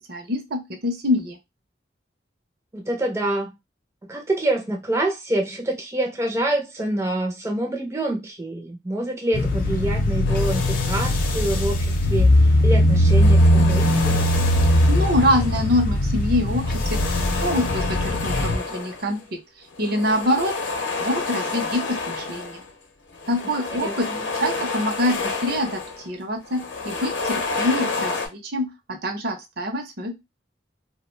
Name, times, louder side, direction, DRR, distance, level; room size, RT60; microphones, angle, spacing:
voice 1, 0.1-1.4 14.9-16.7 16.9-19.4 19.8-20.5 21.0-22.6 23.3-24.1 24.4-25.8 26.1-30.1, left 1 dB, 55° right, 0.6 m, -25 dB
voice 2, 2.7-3.5 4.1-14.2 23.7-24.2, right 1 dB, 15° right, 0.4 m, -26 dB
sound 1, 9.3-18.6, left 1 dB, 50° left, 0.4 m, -20 dB
sound 2, 10.3-12.1 12.9-15.9 16.4-19.2 19.7-22.7 23.1-26.1 26.4-28.3, left 3 dB, 90° left, 0.7 m, -30 dB
2.3 x 2.1 x 3.1 m
head